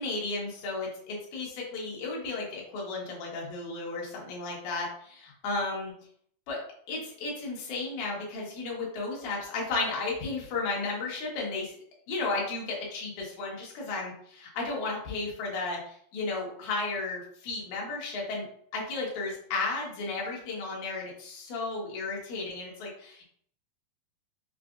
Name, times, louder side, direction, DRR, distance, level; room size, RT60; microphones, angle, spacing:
voice 1, 0.0-5.9 6.5-6.6 6.9-11.7 12.1-18.5 18.7-23.2, left 3 dB, 65° left, -3 dB, 2.3 m, -34 dB
6.0 x 2.4 x 2.4 m, 0.62 s
omnidirectional pair, 4.0 m